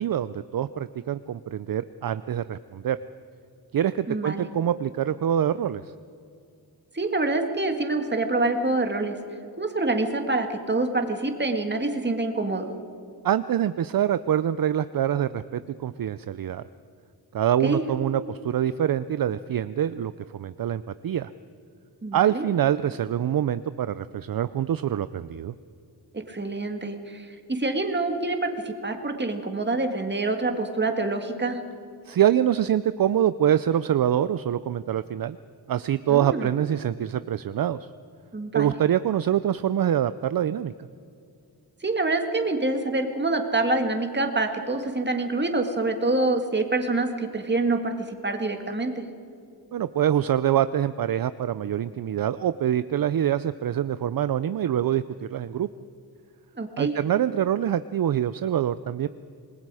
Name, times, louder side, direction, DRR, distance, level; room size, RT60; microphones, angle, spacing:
voice 1, 0.0-3.0 3.7-5.8 13.2-16.6 17.3-21.3 22.1-25.5 32.1-35.4 35.7-37.9 38.5-40.7 49.7-55.7 56.8-59.1, right 10 dB, 60° right, 14 dB, 0.5 m, -25 dB
voice 2, 4.1-4.5 6.9-9.2 9.6-12.7 17.6-17.8 22.0-22.5 26.1-31.6 36.1-36.5 38.3-38.7 41.8-49.0 56.5-56.9, right 2 dB, 25° right, 5 dB, 1.9 m, -26 dB
27.0 x 20.5 x 4.9 m, 2.4 s
wide cardioid pair, 125°, 40 cm